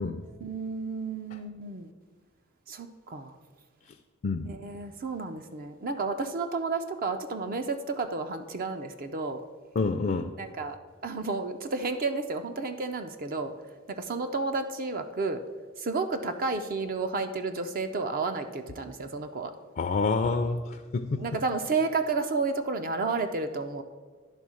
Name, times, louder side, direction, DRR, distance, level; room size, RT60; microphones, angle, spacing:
voice 1, 0.4-1.9 2.7-3.3 4.5-9.4 10.4-10.8 11.0-13.5 13.9-15.4 15.8-19.5 21.2-23.8, right 3 dB, 45° right, 7 dB, 0.5 m, -31 dB
voice 2, 9.8-10.3 19.8-21.3, left 4 dB, 45° left, 7 dB, 0.4 m, -28 dB
11.0 x 3.6 x 6.2 m, 1.5 s
head